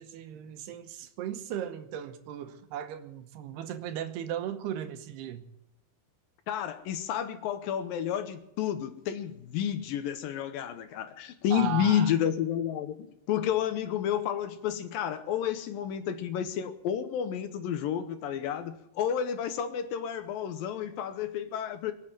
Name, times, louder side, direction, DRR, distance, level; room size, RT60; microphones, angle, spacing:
voice 1, 0.0-5.4 11.5-12.1, right 10 dB, 90° right, 3.1 m, -36 dB
voice 2, 6.5-13.0 13.3-21.9, left 9 dB, 75° left, 2.4 m, -30 dB
23.0 x 7.9 x 7.5 m
omnidirectional pair, 4.6 m